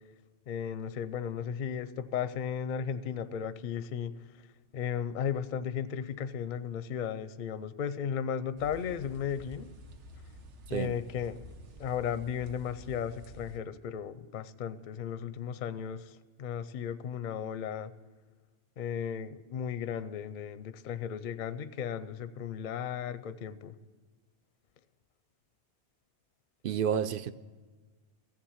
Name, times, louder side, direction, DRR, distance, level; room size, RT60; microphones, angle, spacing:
voice 1, 0.5-4.5 4.7-9.7 10.7-11.5 11.8-17.9 18.8-23.7, left 8 dB, 55° left, 0.6 m, -35 dB
sound 1, 8.6-13.6, equal, 80° right, 1.3 m, -50 dB
voice 2, 26.6-27.3, right 8 dB, 60° right, 0.6 m, -30 dB
15.0 x 7.4 x 8.8 m
omnidirectional pair, 1.2 m